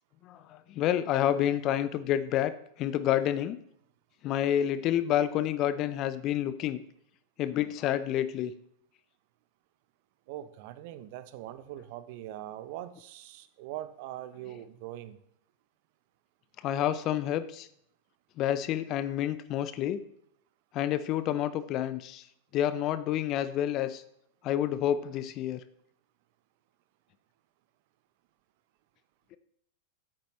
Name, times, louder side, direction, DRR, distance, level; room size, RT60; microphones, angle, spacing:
voice 1, 0.8-2.5 2.8-3.6 4.2-6.8 7.4-8.5 16.6-17.7 18.4-20.0 20.7-22.2 22.5-24.0 24.4-25.6, left 11 dB, 40° left, 14 dB, 0.5 m, -28 dB
voice 2, 10.3-15.2, right 13 dB, 55° right, 13 dB, 0.7 m, -42 dB
9.2 x 7.4 x 3.1 m, 0.71 s
hypercardioid pair, 100°, 0 cm